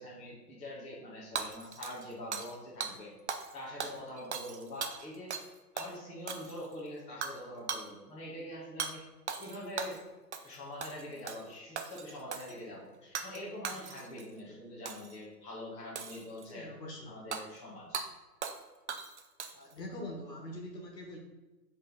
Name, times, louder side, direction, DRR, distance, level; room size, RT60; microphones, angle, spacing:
voice 1, 0.0-3.1 3.5-5.3 5.7-9.0 9.4-10.0 10.4-16.7 17.0-18.0, left 1 dB, 15° left, -7 dB, 1.5 m, -44 dB
Hammer / Shatter, 1.4-2.6 2.8-2.9 3.3-3.5 3.8-5.5 5.8-5.9 6.3-6.7 7.2-7.4 7.7-7.9 8.8-8.9 9.3-10.0 10.3-10.6 10.8-11.4 11.8-12.6 13.1-13.4 13.6-14.2 14.9-15.2 16.0-16.5 17.3-17.4 17.9-18.1 18.4-18.6 18.9-19.7, right 6 dB, 45° right, 0.6 m, -39 dB
voice 2, 16.5-17.2 19.5-21.2, left 1 dB, 75° left, 1 dB, 1.8 m, -43 dB
7.4 x 3.8 x 3.9 m, 1.1 s
figure-of-eight pair, 130°, 50 cm